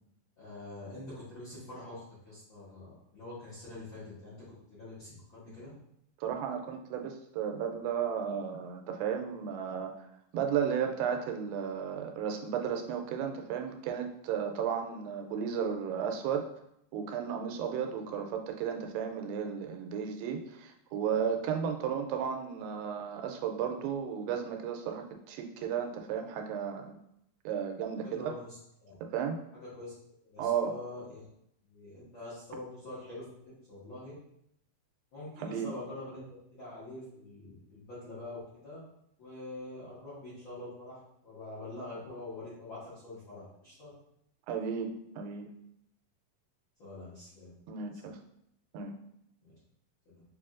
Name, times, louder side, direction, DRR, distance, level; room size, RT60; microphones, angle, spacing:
voice 1, 0.4-5.7 28.0-28.9 29.5-29.9 30.2-31.3 31.6-34.1 35.1-36.2 36.5-38.8 39.2-43.9 46.8-47.5 49.4-49.5 50.0-50.2, left 2 dB, 60° left, -10 dB, 1.3 m, -45 dB
voice 2, 6.2-10.1 10.3-16.5 16.9-27.0 27.5-28.3 29.1-29.4 30.4-30.7 35.4-35.7 44.5-45.5 47.7-48.2 48.7-49.0, right 7 dB, 85° right, 4 dB, 2.3 m, -34 dB
6.8 x 2.6 x 2.4 m, 0.75 s
omnidirectional pair, 4.0 m